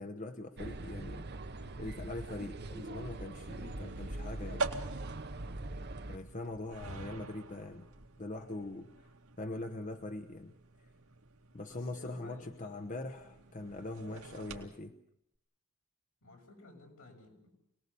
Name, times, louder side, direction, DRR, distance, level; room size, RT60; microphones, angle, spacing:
voice 1, 0.0-1.3 1.8-4.6 6.1-7.9 8.2-8.9 9.4-10.5 11.5-14.9, left 2 dB, 35° left, 5 dB, 1.0 m, -42 dB
sound 1, 0.6-6.2, right 2 dB, 50° right, 1.0 m, -43 dB
sound 2, 3.5-14.7, right 3 dB, 85° right, 2.3 m, -45 dB
voice 2, 11.6-12.8 16.2-17.5, left 2 dB, 75° left, 1 dB, 6.3 m, -55 dB
27.0 x 19.5 x 6.9 m, 0.79 s
head